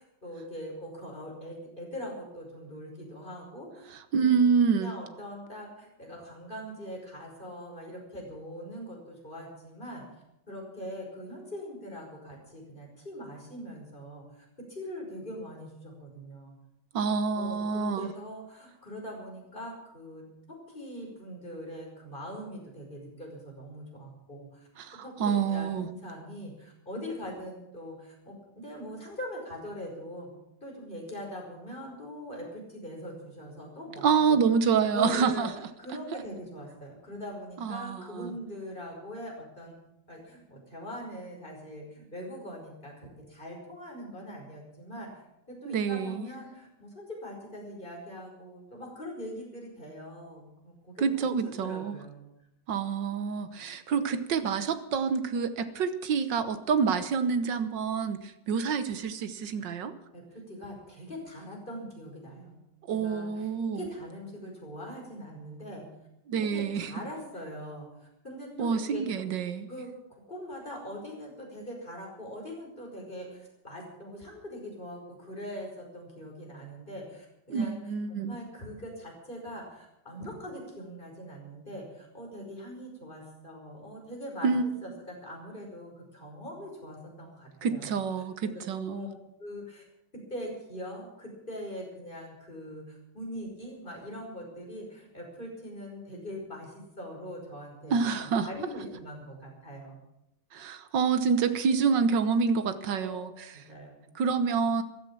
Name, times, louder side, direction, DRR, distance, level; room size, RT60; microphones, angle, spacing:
voice 1, 0.0-3.9 4.2-4.5 4.8-10.0 10.5-16.6 17.4-24.7 25.0-30.3 30.6-34.4 34.9-35.5 35.8-39.8 40.1-52.3 60.1-62.6 62.9-63.5 63.7-65.9 66.4-69.2 69.7-77.8 78.1-88.0 88.4-88.6 88.9-89.1 89.4-89.8 90.3-100.0 103.0-103.2 103.5-104.1, equal, 25° left, 0 dB, 5.8 m, -42 dB
voice 2, 3.9-4.9 16.9-18.1 24.8-25.9 34.0-35.5 37.6-38.3 45.6-46.3 51.0-52.0 52.7-59.9 62.9-63.8 66.3-66.9 68.6-69.7 77.5-78.4 84.4-84.8 87.6-89.0 97.9-98.5 100.5-103.3 104.1-104.8, right 6 dB, 85° right, 11 dB, 1.8 m, -27 dB
15.0 x 12.5 x 7.6 m, 0.85 s
omnidirectional pair, 1.9 m